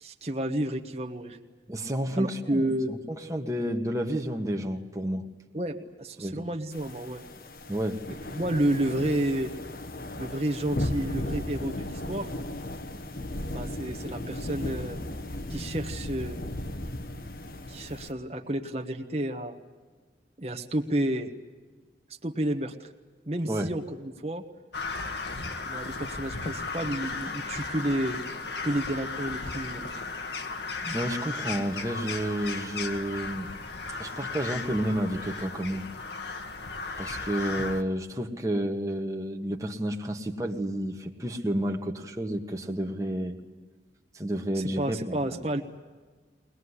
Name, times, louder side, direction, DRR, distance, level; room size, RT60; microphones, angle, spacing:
voice 1, 0.0-1.4 2.2-2.9 5.5-7.2 8.1-9.5 10.1-12.3 13.5-15.0 15.5-16.4 17.7-19.6 20.4-21.3 22.2-22.9 23.3-24.4 25.6-28.2 28.6-29.9 44.5-45.6, right 1 dB, 35° right, 3 dB, 1.3 m, -30 dB
voice 2, 1.7-5.2 6.2-6.4 7.7-8.0 23.4-23.7 30.8-33.5 34.0-35.8 37.0-43.4 44.1-45.4, right 1 dB, 20° right, 2 dB, 1.6 m, -30 dB
sound 1, 6.7-18.1, left 1 dB, 50° left, 1.3 m, -36 dB
Crow, 24.7-37.8, left 4 dB, 70° left, 1.8 m, -35 dB
23.5 x 19.5 x 9.9 m, 1.4 s
head